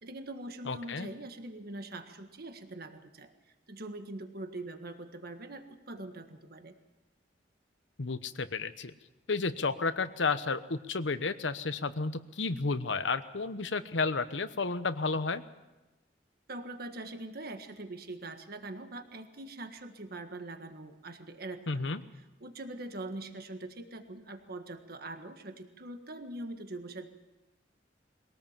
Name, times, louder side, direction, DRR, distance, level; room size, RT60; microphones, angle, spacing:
voice 1, 0.0-3.3 3.7-6.8 16.5-21.9 22.4-27.1, right 2 dB, 55° right, 7 dB, 1.7 m, -43 dB
voice 2, 0.6-1.1 8.0-8.9 9.3-15.4 21.7-22.0, left 4 dB, 85° left, 12 dB, 1.0 m, -32 dB
22.5 x 18.0 x 7.4 m, 1.1 s
head